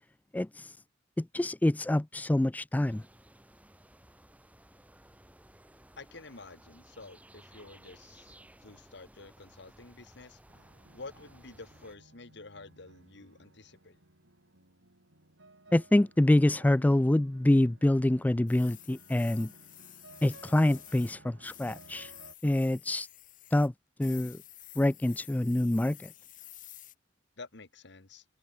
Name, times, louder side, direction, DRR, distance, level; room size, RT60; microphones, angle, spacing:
voice 1, 0.3-0.7 1.2-3.0 15.7-19.5 20.2-22.1 22.4-23.1 23.5-23.7 24.0-24.4 24.8-26.1, left 1 dB, 10° left, 0.3 m, -26 dB
sound 1, 2.8-12.0, right 1 dB, 10° right, 3.2 m, -57 dB
voice 2, 6.0-14.0 27.4-28.3, left 3 dB, 65° left, 2.0 m, -50 dB
sound 2, 10.5-22.4, right 2 dB, 85° right, 7.3 m, -57 dB
sound 3, 18.5-21.2 21.4-23.7 24.0-26.9, left 14 dB, 45° left, 1.1 m, -51 dB
head